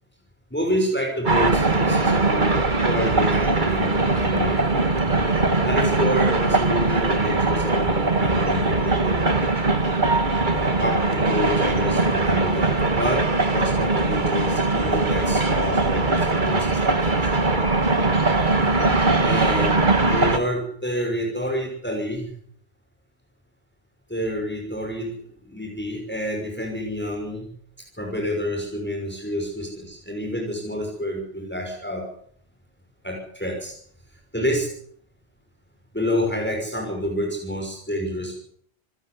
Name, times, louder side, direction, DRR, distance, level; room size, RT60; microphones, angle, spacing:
voice 1, 0.5-2.5 2.8-4.6 5.6-9.2 10.6-17.4 19.2-22.3 24.1-25.1 25.4-27.5 28.0-32.0 33.0-33.7 34.3-34.7 35.9-38.4, equal, 10° left, 0 dB, 6.1 m, -28 dB
sound 1, 1.3-20.4, right 3 dB, 45° right, 2.1 m, -21 dB
27.5 x 15.5 x 8.3 m, 0.63 s
omnidirectional pair, 1.1 m